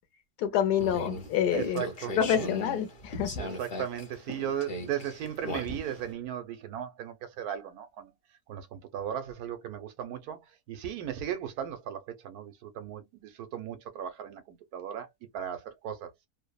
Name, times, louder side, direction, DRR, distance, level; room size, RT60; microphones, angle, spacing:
voice 1, 0.4-1.8 2.2-3.4, left 9 dB, 85° left, 1.3 m, -27 dB
sound 1, 0.7-6.1, left 1 dB, 45° left, 0.9 m, -39 dB
voice 2, 1.5-2.5 3.4-8.1 8.5-10.4 10.7-15.1 15.3-16.1, right 9 dB, 75° right, 1.1 m, -36 dB
3.0 x 2.0 x 2.2 m
omnidirectional pair, 1.6 m